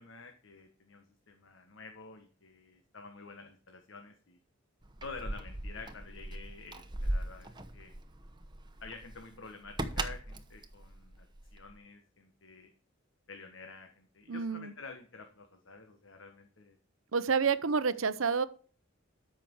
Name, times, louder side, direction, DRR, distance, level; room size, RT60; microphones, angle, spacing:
voice 1, 0.0-4.4 5.0-8.0 8.8-12.7 13.3-16.7, left 4 dB, 65° left, 5 dB, 1.4 m, -49 dB
Keys jangling, 4.8-11.8, right 1 dB, 20° right, 1.0 m, -39 dB
voice 2, 14.3-14.7 17.1-18.4, right 5 dB, 75° right, 14 dB, 0.8 m, -29 dB
13.5 x 6.0 x 4.6 m, 0.41 s
head